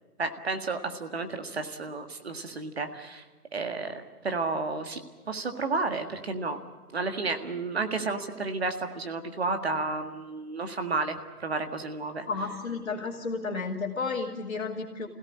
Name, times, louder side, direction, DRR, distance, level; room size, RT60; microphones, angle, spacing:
voice 1, 0.2-3.2 3.5-5.0 5.3-6.6 6.9-12.3, right 3 dB, 45° right, 6 dB, 1.9 m, -32 dB
voice 2, 12.3-15.1, left 4 dB, 45° left, -5 dB, 3.4 m, -32 dB
25.0 x 17.0 x 9.8 m, 1.4 s
figure-of-eight pair, 165°, 45 cm